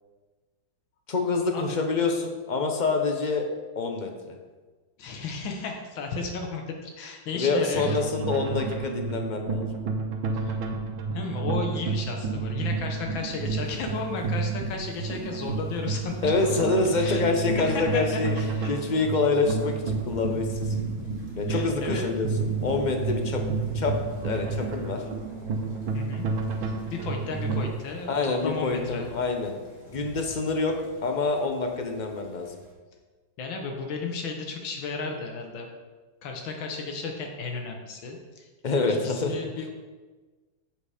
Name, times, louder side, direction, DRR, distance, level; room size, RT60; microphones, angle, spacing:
voice 1, 1.1-3.5 3.8-4.4 7.3-9.7 16.2-18.3 18.7-20.7 21.4-23.4 23.7-24.0 24.2-25.0 28.1-29.5 29.9-30.8 31.0-32.6 38.6-39.5, left 3 dB, 40° left, 3 dB, 0.6 m, -26 dB
voice 2, 5.0-8.0 10.4-10.6 11.1-16.3 17.0-17.2 17.6-18.8 21.5-22.0 25.9-26.3 26.6-29.1 33.4-35.7 36.2-38.5 38.9-39.7, left 4 dB, 90° left, 2 dB, 1.9 m, -34 dB
sound 1, 7.7-27.7, right 4 dB, 75° right, 1.7 m, -31 dB
sound 2, 13.3-32.7, right 1 dB, 20° left, 2.2 m, -44 dB
7.8 x 7.3 x 5.0 m, 1.3 s
omnidirectional pair, 2.1 m